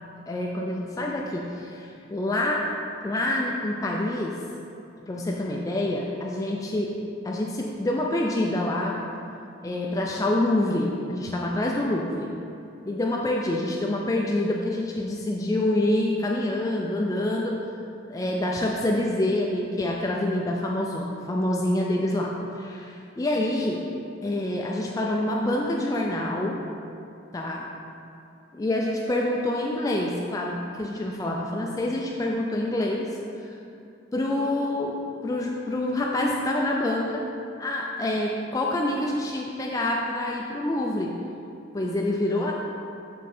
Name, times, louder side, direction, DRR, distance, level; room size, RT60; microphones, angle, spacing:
voice 1, 0.3-2.7 3.0-4.4 5.1-7.0 7.2-9.0 9.6-12.3 12.9-17.6 18.1-23.8 24.2-26.6 27.3-27.7 28.5-33.1 33.4-33.5 34.1-37.2 37.6-41.1 41.7-42.6, left 1 dB, 15° left, -2 dB, 0.3 m, -26 dB
7.3 x 3.7 x 4.3 m, 2.6 s
head